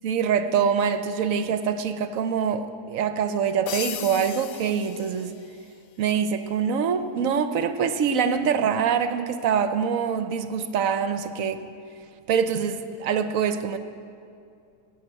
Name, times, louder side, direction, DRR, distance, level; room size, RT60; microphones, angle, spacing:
voice 1, 0.0-5.3 6.0-11.7 12.3-13.8, right 7 dB, 65° right, 10 dB, 0.9 m, -24 dB
sound 1, 3.7-5.7, left 11 dB, 80° left, 1.2 m, -36 dB
16.0 x 6.0 x 8.8 m, 2.4 s
omnidirectional pair, 1.8 m